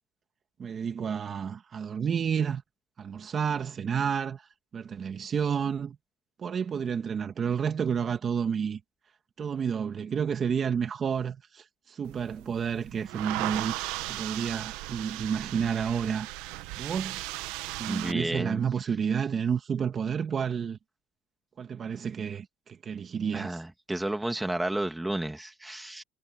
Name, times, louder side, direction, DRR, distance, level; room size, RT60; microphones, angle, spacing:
voice 1, 0.6-2.6 3.0-4.5 4.7-6.0 6.4-8.8 9.4-13.7 14.1-16.3 16.8-17.2 17.8-20.8 21.6-23.6, right 7 dB, 35° right, 1.8 m, -30 dB
sound 1, 12.0-18.1, right 20 dB, 75° right, 1.1 m, -37 dB
voice 2, 17.9-18.6 23.3-26.0, right 1 dB, 5° right, 2.4 m, -32 dB
supercardioid pair, 115°, 0 cm